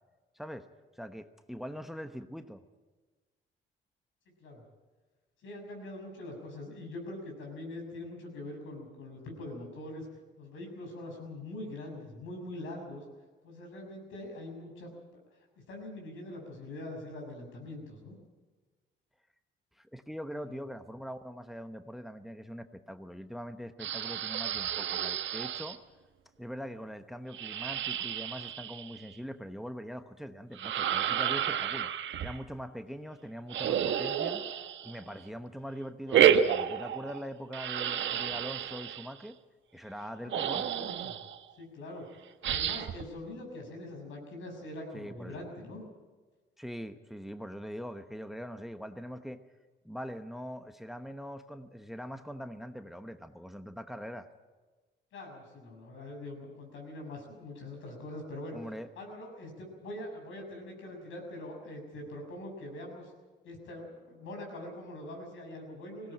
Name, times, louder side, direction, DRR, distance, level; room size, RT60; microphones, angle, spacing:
voice 1, 0.3-0.7 0.9-2.6 19.8-25.8 26.4-31.9 32.2-34.4 34.8-39.4 39.7-40.7 44.9-45.4 46.6-49.4 49.8-54.3 58.5-58.9, equal, ahead, 9 dB, 1.0 m, -42 dB
voice 2, 5.4-10.1 10.4-13.0 13.4-14.9 15.7-18.1 20.3-20.6 40.2-41.2 41.6-42.1 42.4-45.8 55.1-58.6 58.9-63.1 63.4-66.1, left 1 dB, 80° left, 2 dB, 6.6 m, -43 dB
sound 1, 23.8-25.8 27.3-29.1 30.5-32.4 33.5-35.2 36.1-37.2 37.5-39.1 40.0-40.1 40.3-41.4 42.4-43.0, right 9 dB, 70° right, 1.3 m, -30 dB
19.5 x 17.0 x 8.7 m, 1.3 s
cardioid pair, 90°, 20 cm